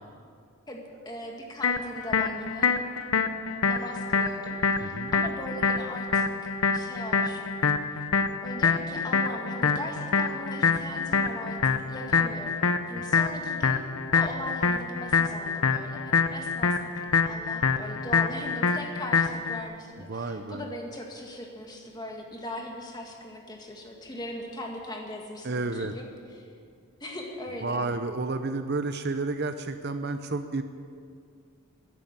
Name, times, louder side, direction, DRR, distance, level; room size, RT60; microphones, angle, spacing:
voice 1, 0.7-2.8 3.7-7.6 8.4-13.9 14.1-16.9 17.2-26.5 27.0-27.9, left 1 dB, 20° left, 1 dB, 1.7 m, -39 dB
sound 1, 1.6-19.6, left 5 dB, 75° left, 0.8 m, -26 dB
voice 2, 4.8-5.1 12.9-13.2 20.1-20.6 25.4-25.9 27.6-30.6, right 3 dB, 45° right, 9 dB, 0.7 m, -31 dB
13.5 x 10.5 x 8.8 m, 2.3 s
head